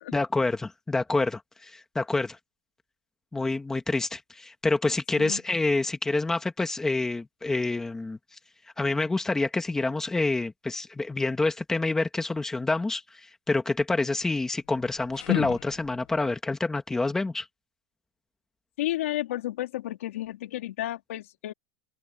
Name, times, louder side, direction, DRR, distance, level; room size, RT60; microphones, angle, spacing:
voice 1, 0.1-2.4 3.3-8.2 8.8-17.5, left 3 dB, 5° left, 1.7 m, -27 dB
sound 1, 14.6-16.3, left 20 dB, 50° left, 1.9 m, -33 dB
voice 2, 18.8-21.5, left 14 dB, 80° left, 3.2 m, -32 dB
open air
supercardioid pair, 165°, 7 cm